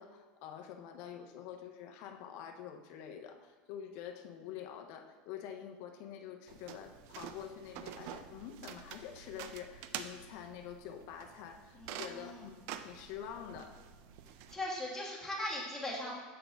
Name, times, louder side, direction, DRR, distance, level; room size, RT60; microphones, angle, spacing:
voice 1, 0.0-13.8, left 9 dB, 60° left, 5 dB, 0.5 m, -47 dB
sound 1, 6.5-14.6, right 9 dB, 60° right, 0.4 m, -48 dB
voice 2, 14.5-16.1, left 1 dB, 10° left, -5 dB, 1.5 m, -38 dB
7.5 x 4.1 x 3.4 m, 1.4 s
supercardioid pair, 130°, 5 cm